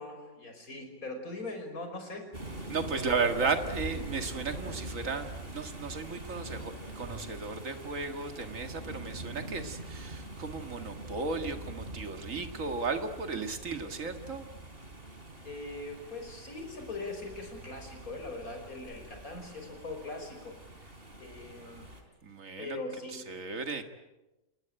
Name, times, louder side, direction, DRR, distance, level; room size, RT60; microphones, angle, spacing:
voice 1, 0.0-2.3 2.9-3.1 15.4-20.6 21.2-21.9 22.6-23.3, left 2 dB, 80° left, 5 dB, 5.9 m, -41 dB
sound 1, 2.3-22.0, right 1 dB, 40° right, 4.1 m, -43 dB
voice 2, 2.7-14.4 22.2-22.8 23.1-23.8, right 4 dB, 65° right, 7 dB, 2.4 m, -34 dB
28.5 x 20.5 x 9.0 m, 1.1 s
omnidirectional pair, 1.5 m